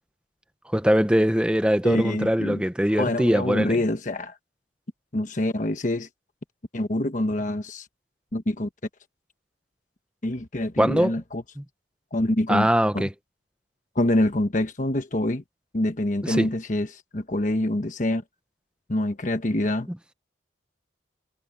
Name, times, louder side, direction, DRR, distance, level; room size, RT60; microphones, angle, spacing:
voice 1, 0.7-3.8 10.8-11.1 11.6-11.7 12.5-13.1 16.2-16.5 19.9-20.0, equal, 5° right, 0.9 m, -22 dB
voice 2, 1.8-2.6 2.9-4.4 5.1-6.1 6.7-7.9 8.3-8.7 10.2-11.4 12.1-12.7 12.9-13.1 13.9-15.4 15.7-18.2 18.9-19.9, left 1 dB, 40° left, 1.2 m, -25 dB
head